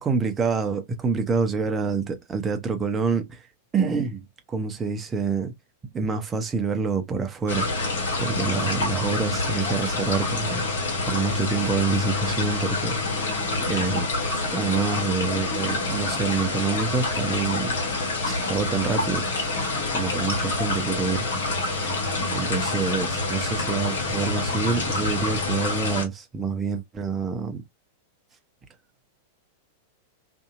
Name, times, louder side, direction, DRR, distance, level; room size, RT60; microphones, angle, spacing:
voice 1, 0.0-3.4 3.7-5.5 5.8-7.7 8.2-10.7 11.0-13.4 13.6-14.1 14.5-17.7 18.2-19.2 19.9-21.3 22.3-27.6, right 5 dB, 20° right, 0.8 m, -27 dB
sound 1, 7.5-26.0, left 2 dB, 70° left, 1.5 m, -27 dB
2.7 x 2.7 x 2.4 m
figure-of-eight pair, 95°, 0 cm